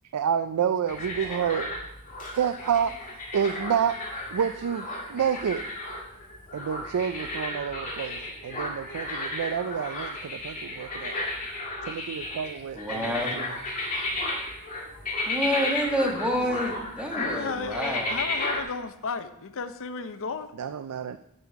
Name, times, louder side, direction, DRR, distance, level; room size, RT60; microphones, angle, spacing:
voice 1, 0.1-1.7 2.3-4.0 4.3-5.7 6.5-11.2 11.8-13.6 16.4-16.5 20.5-21.2, right 8 dB, 80° right, 11 dB, 0.4 m, -29 dB
sound 1, 0.9-18.6, left 2 dB, 35° left, 2.0 m, -33 dB
voice 2, 12.7-13.4 15.2-18.2, equal, 5° right, 0 dB, 1.5 m, -28 dB
voice 3, 17.1-20.5, left 5 dB, 65° left, 10 dB, 0.6 m, -34 dB
9.4 x 5.5 x 4.7 m, 0.83 s
head